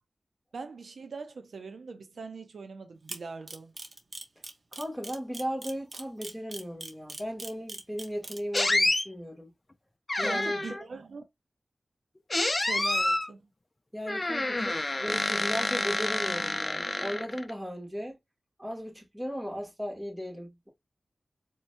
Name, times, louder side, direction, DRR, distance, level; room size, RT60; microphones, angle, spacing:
voice 1, 0.5-3.7 10.2-11.2 12.6-13.5, right 4 dB, 85° right, 0.6 m, -42 dB
Camera, 3.1-8.6, right 2 dB, 50° right, 1.1 m, -40 dB
voice 2, 4.7-9.5 10.2-10.8 13.9-18.2 18.6-20.7, equal, 10° right, 2.0 m, -36 dB
sound 1, 8.5-9.1 10.1-10.8 12.3-13.3 14.1-17.5, left 2 dB, 30° left, 0.6 m, -28 dB
4.4 x 2.9 x 2.6 m
wide cardioid pair, 75°, 0 cm